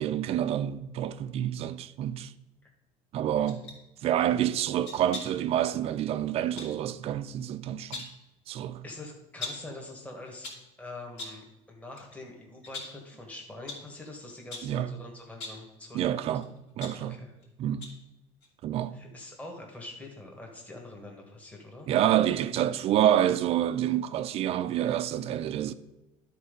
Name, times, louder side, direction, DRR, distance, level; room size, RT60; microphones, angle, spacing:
voice 1, 0.0-2.3 3.1-3.6 4.0-8.1 8.5-8.8 14.6-14.9 15.9-17.2 17.6-17.9 18.6-19.0 21.9-25.7, right 11 dB, 45° right, 0.4 m, -28 dB
sound 1, 3.5-3.8 4.8-5.5 6.6-6.8 7.7-8.2 9.4-9.7 10.2-10.7 11.2-11.5 12.0-12.1 12.6-13.1 13.7-13.9 14.5-14.8 15.3-15.7 16.4-17.5 17.8-18.1 18.4-18.5, left 3 dB, 85° left, 2.9 m, -41 dB
voice 2, 8.8-16.4 17.0-17.3 18.9-21.9, left 2 dB, 10° left, 1.4 m, -45 dB
11.0 x 4.0 x 5.1 m
cardioid pair, 135°, 14 cm